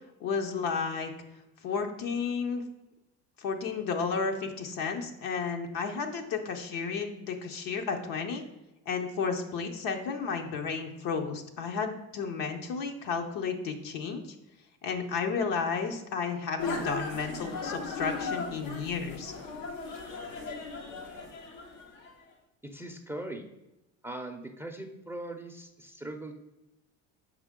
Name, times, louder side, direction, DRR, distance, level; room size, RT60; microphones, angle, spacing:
voice 1, 0.2-1.1 1.6-2.6 3.4-8.4 8.9-14.2 14.8-19.3, left 5 dB, 65° left, 3 dB, 0.9 m, -32 dB
sound 1, 16.6-22.1, left 4 dB, 85° left, 1.3 m, -37 dB
voice 2, 22.6-23.5 24.0-26.4, right 1 dB, 5° right, 5 dB, 0.5 m, -40 dB
6.2 x 4.9 x 3.7 m, 0.99 s
supercardioid pair, 95°, 36 cm